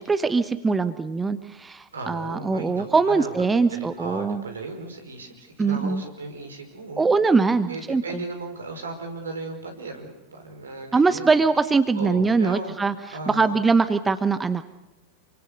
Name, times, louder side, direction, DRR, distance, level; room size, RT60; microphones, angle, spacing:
voice 1, 0.0-4.4 5.6-6.0 7.0-8.2 10.9-14.7, right 4 dB, 15° right, 12 dB, 1.1 m, -22 dB
voice 2, 1.9-7.1 7.7-11.3 11.9-12.7 13.1-13.6, right 3 dB, 70° right, 5 dB, 5.1 m, -36 dB
28.0 x 24.5 x 6.7 m, 1.0 s
figure-of-eight pair, 90°, 0 cm